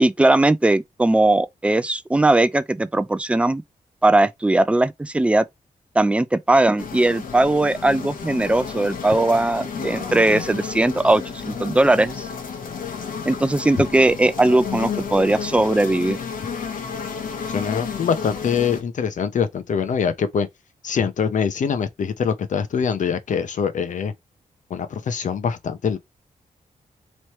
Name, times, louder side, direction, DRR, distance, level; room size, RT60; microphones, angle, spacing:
voice 1, 0.0-3.6 4.0-5.4 6.0-12.3 13.3-16.2, right 2 dB, 10° right, 0.4 m, -19 dB
sound 1, 6.8-18.8, left 6 dB, 80° left, 1.2 m, -31 dB
voice 2, 17.5-20.5 20.8-24.1 24.7-26.0, left 6 dB, 65° left, 0.7 m, -24 dB
3.1 x 3.1 x 4.2 m
wide cardioid pair, 125°, 14 cm